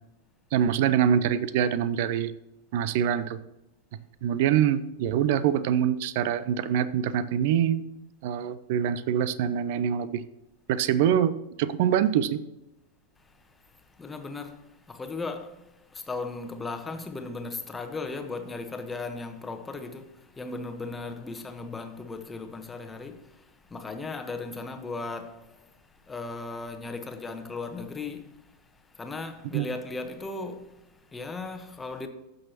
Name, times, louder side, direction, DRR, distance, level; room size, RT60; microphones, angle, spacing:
voice 1, 0.5-2.3 2.7-3.4 4.2-7.8 8.2-10.2 10.7-11.3 11.6-12.4 29.5-29.7, right 9 dB, 50° right, 0.6 m, -24 dB
voice 2, 13.2-32.1, left 3 dB, 15° left, 1.1 m, -37 dB
15.0 x 6.4 x 2.9 m
figure-of-eight pair, 90°, 0 cm